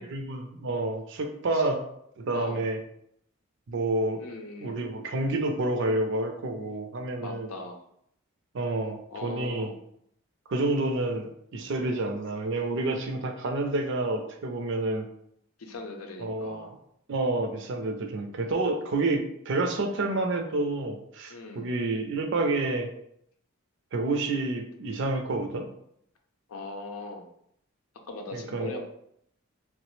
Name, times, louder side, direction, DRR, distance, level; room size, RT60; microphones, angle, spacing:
voice 1, 0.0-1.8 2.2-2.8 3.7-4.2 4.6-7.5 8.5-9.7 10.5-15.1 16.2-16.7 17.1-22.9 23.9-25.7 28.3-28.9, right 2 dB, 60° right, 5 dB, 0.4 m, -29 dB
voice 2, 2.3-2.6 4.2-4.8 7.2-7.8 9.1-9.8 15.6-16.7 21.3-21.7 26.5-27.3 28.1-28.9, left 2 dB, 90° left, 3 dB, 0.6 m, -39 dB
3.1 x 2.0 x 3.1 m, 0.71 s
head